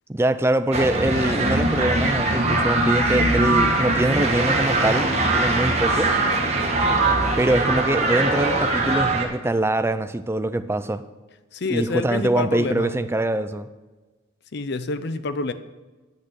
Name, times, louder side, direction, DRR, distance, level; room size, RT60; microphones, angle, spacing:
voice 1, 0.1-6.1 7.4-11.1 11.7-13.7, right 1 dB, 10° right, 11 dB, 0.4 m, -23 dB
sound 1, 0.7-9.2, right 2 dB, 30° right, 1.7 m, -21 dB
voice 2, 11.5-12.9 14.5-15.5, left 3 dB, 55° left, 12 dB, 0.6 m, -27 dB
10.0 x 6.3 x 7.5 m, 1.2 s
head